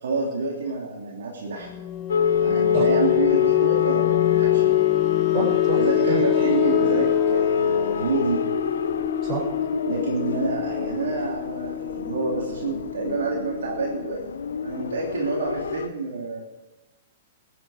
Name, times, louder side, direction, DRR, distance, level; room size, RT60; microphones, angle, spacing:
voice 1, 0.0-1.7 2.4-4.7 5.8-8.4 9.9-14.2 14.6-16.4, right 3 dB, 65° right, -3 dB, 3.5 m, -28 dB
sound 1, 1.6-14.1, left 16 dB, 30° left, 0.4 m, -26 dB
sound 2, 2.1-15.9, left 6 dB, 65° left, 0.8 m, -26 dB
voice 2, 5.3-5.8 6.1-6.2 9.2-9.4, right 4 dB, 30° right, -2 dB, 6.1 m, -27 dB
22.0 x 10.0 x 5.2 m, 1.1 s
figure-of-eight pair, 110°, 0 cm